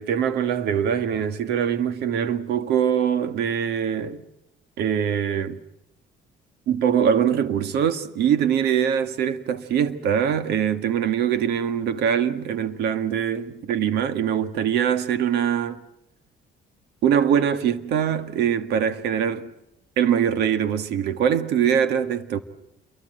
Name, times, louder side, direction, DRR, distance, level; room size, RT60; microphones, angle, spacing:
voice 1, 0.0-4.2 4.8-5.6 6.7-15.8 17.0-19.5 20.0-22.4, right 8 dB, 75° right, 1.8 m, -23 dB
28.0 x 23.5 x 7.8 m
cardioid pair, 110°, 17 cm